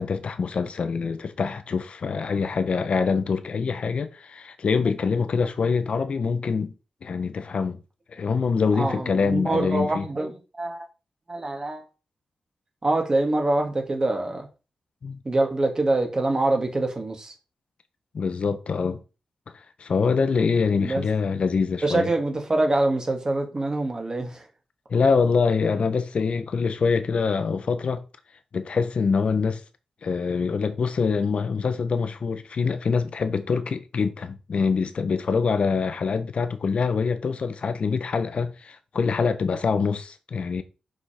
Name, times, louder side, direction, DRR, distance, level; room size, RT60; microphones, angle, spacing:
voice 1, 0.0-6.7 7.0-7.8 8.1-10.1 15.0-15.2 18.1-19.0 19.8-22.1 24.9-28.0 28.5-29.6 30.0-40.6, left 5 dB, 60° left, 1.1 m, -25 dB
voice 2, 8.7-10.9 11.3-11.8 12.8-14.5 15.2-17.3 20.8-21.1 21.8-24.5, right 2 dB, 30° right, 2.2 m, -25 dB
6.1 x 5.4 x 5.1 m
wide cardioid pair, 100°, 2 cm